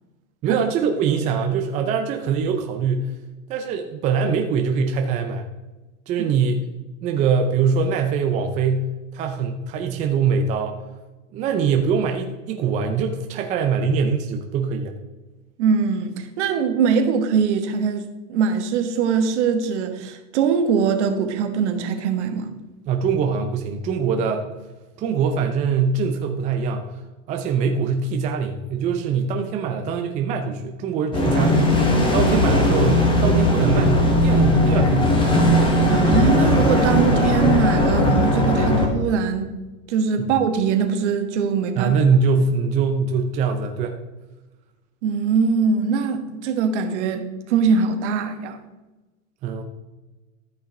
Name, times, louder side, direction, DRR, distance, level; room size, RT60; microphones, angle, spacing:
voice 1, 0.4-3.1 3.5-5.5 6.1-6.6 7.0-10.8 11.3-14.9 22.9-24.5 25.0-27.0 27.3-31.7 32.1-35.4 40.2-40.3 41.8-44.0 49.4-49.6, right 5 dB, 20° right, 4 dB, 0.5 m, -23 dB
voice 2, 15.6-18.0 18.3-22.5 35.9-39.5 39.9-41.9 45.0-48.6, right 6 dB, 55° right, 6 dB, 1.5 m, -22 dB
Forest rain Atmo Fantasy, 31.1-38.9, left 1 dB, 10° left, 1.5 m, -18 dB
13.5 x 5.7 x 3.8 m, 1.1 s
hypercardioid pair, 140°, 41 cm